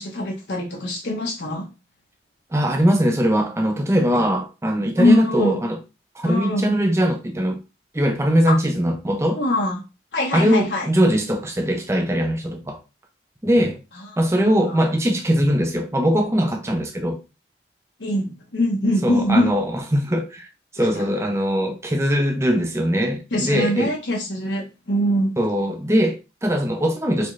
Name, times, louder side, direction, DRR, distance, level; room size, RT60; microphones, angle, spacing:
voice 1, 0.0-1.7 5.0-5.6 6.2-6.7 8.5-8.6 9.4-9.8 10.1-10.9 14.4-14.9 18.0-19.5 20.8-20.9 23.3-25.4, left 1 dB, 75° left, 1.0 m, -23 dB
voice 2, 2.5-5.8 6.2-7.6 7.9-9.4 10.3-12.8 13.4-13.8 14.2-17.2 19.0-20.5 20.7-23.9 25.4-27.3, equal, 15° right, 0.6 m, -21 dB
4.3 x 3.6 x 3.2 m
head